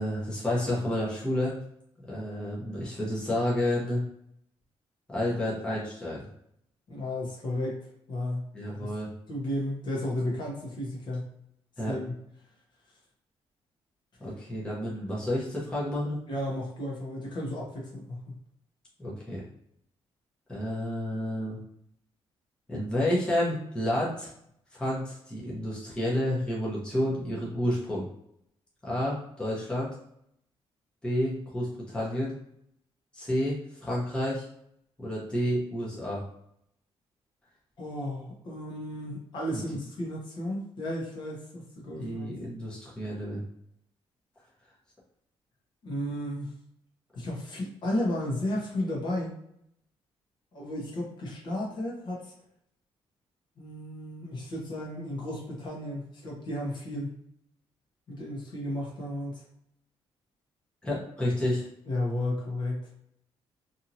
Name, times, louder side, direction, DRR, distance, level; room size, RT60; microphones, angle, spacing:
voice 1, 0.0-1.6 2.1-4.0 5.1-6.3 8.5-9.1 11.8-12.0 14.2-16.2 19.0-19.4 20.5-21.6 22.7-24.3 24.8-28.1 28.8-29.9 31.0-32.4 33.1-34.4 35.0-36.2 39.5-39.8 42.0-43.4 60.8-61.7, left 1 dB, 10° left, -6 dB, 0.8 m, -30 dB
voice 2, 6.9-7.8 8.1-8.5 8.8-8.9 9.3-11.3 11.9-12.1 16.3-18.3 37.8-42.3 45.8-46.5 47.1-49.3 50.5-52.3 53.6-57.1 58.1-59.4 61.9-62.9, left 1 dB, 50° left, -3 dB, 0.9 m, -33 dB
2.8 x 2.7 x 2.6 m, 0.74 s
cardioid pair, 165°, 10 cm